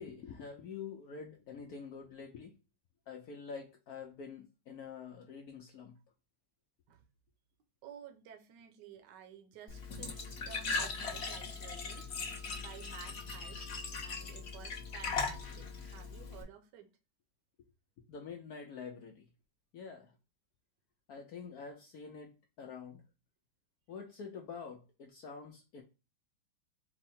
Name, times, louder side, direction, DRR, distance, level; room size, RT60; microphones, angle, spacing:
voice 1, 0.0-2.5 3.1-5.9 18.1-19.3 19.7-20.1 21.1-23.0 23.9-25.8, left 5 dB, 75° left, 3 dB, 0.8 m, -46 dB
voice 2, 7.8-12.0 12.6-13.7 14.0-16.9, right 8 dB, 65° right, 5 dB, 1.3 m, -53 dB
Glass / Trickle dribble / Fill (with liquid), 9.7-16.4, left 4 dB, 45° left, 0.8 m, -39 dB
4.6 x 2.1 x 4.0 m, 0.30 s
omnidirectional pair, 2.2 m